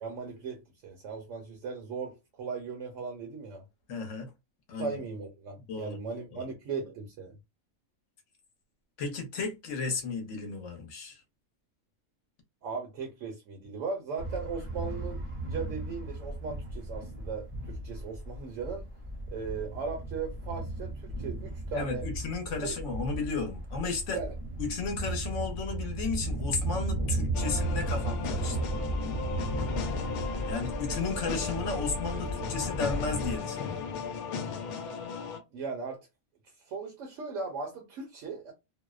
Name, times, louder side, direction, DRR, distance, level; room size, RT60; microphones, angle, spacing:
voice 1, 0.0-3.6 4.8-7.3 12.6-18.9 19.3-22.1 22.6-22.8 24.1-24.3 35.5-36.0 36.6-38.5, right 4 dB, 70° right, 0.9 m, -38 dB
voice 2, 3.9-4.3 4.7-5.0 5.7-6.0 6.3-6.5 9.0-11.2 21.7-24.2 24.6-28.7 30.5-33.9, left 4 dB, 65° left, 1.0 m, -34 dB
sound 1, 14.2-33.4, right 2 dB, 35° right, 0.5 m, -35 dB
sound 2, 27.3-35.4, left 5 dB, 85° left, 1.0 m, -36 dB
2.6 x 2.0 x 2.3 m
omnidirectional pair, 1.5 m